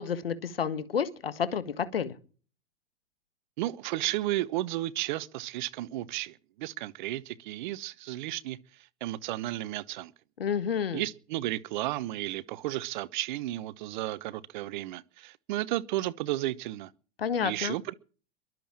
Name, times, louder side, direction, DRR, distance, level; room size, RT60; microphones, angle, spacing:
voice 1, 0.0-2.2 10.4-11.0 17.2-17.8, left 7 dB, 80° left, 1.6 m, -30 dB
voice 2, 3.6-8.6 9.0-10.1 10.9-16.9 17.4-17.9, right 16 dB, 55° right, 1.0 m, -33 dB
22.5 x 7.7 x 7.3 m
figure-of-eight pair, 95°, 29 cm